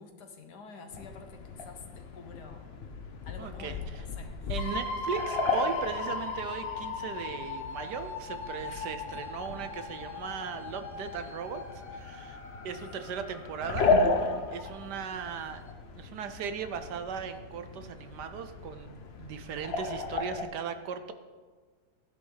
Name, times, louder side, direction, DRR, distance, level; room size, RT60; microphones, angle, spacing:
voice 1, 0.0-2.7 3.2-4.3 8.7-9.2 12.5-13.0, left 4 dB, 65° left, 5 dB, 1.7 m, -49 dB
sound 1, 0.9-20.4, left 3 dB, 45° left, 0.8 m, -35 dB
voice 2, 3.4-4.0 4.5-11.6 11.9-15.6 15.9-21.1, right 7 dB, 70° right, 8 dB, 1.2 m, -38 dB
sound 2, 4.6-14.5 15.3-15.4 15.7-15.8, left 3 dB, 85° left, 2.0 m, -39 dB
15.5 x 10.5 x 3.9 m, 1.5 s
omnidirectional pair, 2.0 m